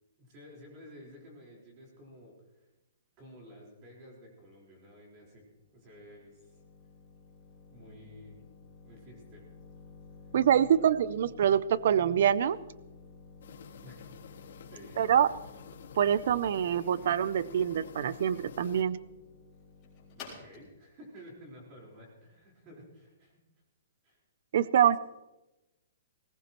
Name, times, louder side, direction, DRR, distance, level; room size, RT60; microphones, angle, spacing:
voice 1, 0.2-2.7 3.2-5.4 5.7-6.6 7.7-8.4 8.8-9.4 10.8-10.9 13.8-14.1 14.7-15.0 20.1-23.4 24.0-24.2, equal, 25° right, -2 dB, 4.4 m, -52 dB
sound 1, 5.1-22.7, left 3 dB, 15° left, 4.2 m, -53 dB
voice 2, 10.3-12.6 15.0-15.3 16.0-19.0 24.5-25.0, right 9 dB, 45° right, 18 dB, 0.5 m, -25 dB
sound 2, 13.4-18.8, left 7 dB, 60° left, 1.6 m, -49 dB
19.5 x 18.0 x 3.0 m, 1.0 s
hypercardioid pair, 175°, 0 cm